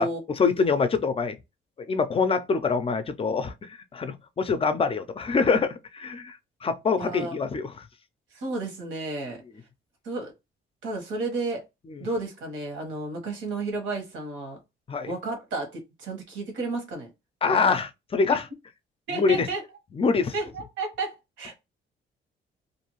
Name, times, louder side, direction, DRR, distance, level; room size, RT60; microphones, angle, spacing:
voice 1, 0.4-1.3 1.8-7.9 11.9-12.0 14.9-15.1 17.4-18.4 19.1-19.5 20.0-20.3, left 5 dB, 30° left, 0.4 m, -25 dB
voice 2, 7.0-7.4 8.3-9.4 10.0-10.3 10.8-11.6 12.0-14.6 15.1-17.1 19.1-19.6 20.3-21.6, right 2 dB, 80° right, 1.2 m, -32 dB
2.5 x 2.3 x 3.0 m
cardioid pair, 90°, 20 cm